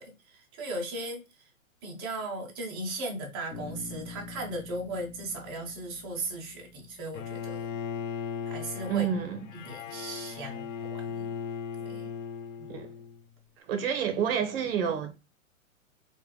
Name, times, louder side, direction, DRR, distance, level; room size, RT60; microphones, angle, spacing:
voice 1, 0.0-1.5 1.8-7.6 8.4-9.1 9.5-11.3 11.8-12.1 12.6-12.7, right 2 dB, 20° right, 0.4 m, -37 dB
Bass guitar, 3.5-7.6, left 4 dB, 80° left, 1.0 m, -46 dB
Bowed string instrument, 7.1-13.3, left 6 dB, 65° left, 0.5 m, -37 dB
voice 2, 8.9-9.4 12.7-12.9 13.7-15.1, right 8 dB, 45° right, 0.8 m, -29 dB
3.3 x 2.3 x 3.0 m
hypercardioid pair, 140°, 41 cm